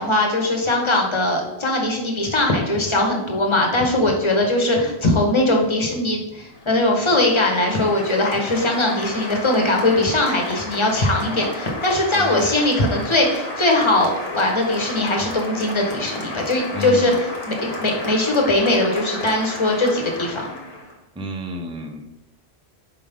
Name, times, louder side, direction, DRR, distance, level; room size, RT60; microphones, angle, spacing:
voice 1, 0.0-20.5, left 1 dB, 25° left, 1 dB, 1.2 m, -20 dB
Applause, 6.5-21.0, left 2 dB, 65° left, 1.5 m, -32 dB
voice 2, 16.7-17.2 21.2-22.1, left 1 dB, 5° right, 3 dB, 0.6 m, -30 dB
5.7 x 4.9 x 3.5 m, 0.99 s
omnidirectional pair, 1.1 m